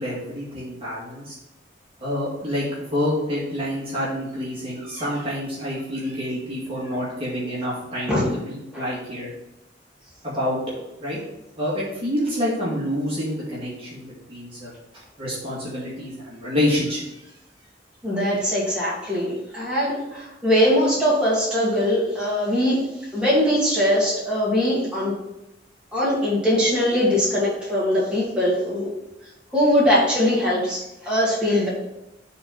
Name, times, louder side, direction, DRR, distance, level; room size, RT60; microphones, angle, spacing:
voice 1, 0.0-1.3 2.0-9.3 10.2-10.6 11.0-11.2 11.6-14.7 15.2-17.0, left 1 dB, 30° right, -7 dB, 2.0 m, -27 dB
voice 2, 18.0-22.8 23.1-25.1 25.9-28.9 29.5-31.7, equal, 5° right, -8 dB, 2.4 m, -21 dB
6.7 x 3.8 x 5.7 m, 0.91 s
head